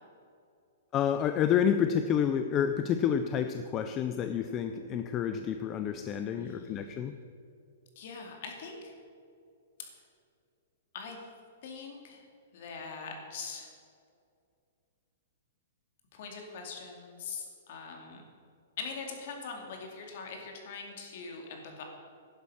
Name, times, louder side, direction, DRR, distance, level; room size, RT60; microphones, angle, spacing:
voice 1, 0.9-7.2, left 8 dB, 15° left, 8 dB, 0.4 m, -29 dB
Bowed string instrument, 3.1-7.6, equal, 10° right, 3.1 m, -51 dB
voice 2, 6.3-7.1 8.0-8.9 9.8-9.9 10.9-11.2 11.6-12.2 12.5-13.7 16.1-18.2 18.8-21.8, left 5 dB, 40° left, 2 dB, 2.4 m, -42 dB
11.0 x 11.0 x 5.6 m, 2.4 s
hypercardioid pair, 180°, 0 cm